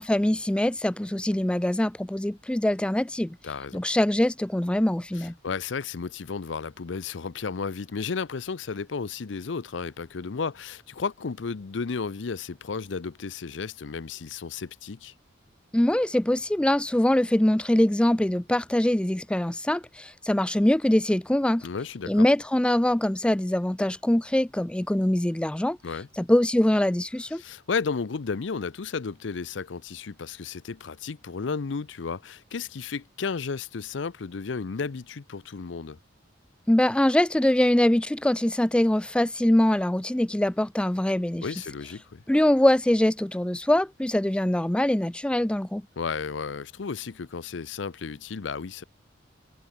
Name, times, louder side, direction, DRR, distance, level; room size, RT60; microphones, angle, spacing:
voice 1, 0.0-3.4 3.7-5.3 15.7-21.6 22.1-25.8 26.2-27.4 36.7-41.4 42.3-45.8, left 1 dB, 5° left, 0.4 m, -23 dB
voice 2, 3.4-3.8 5.2-15.1 21.6-22.3 25.8-26.1 27.3-36.0 41.4-42.2 46.0-48.8, left 5 dB, 70° left, 0.6 m, -33 dB
head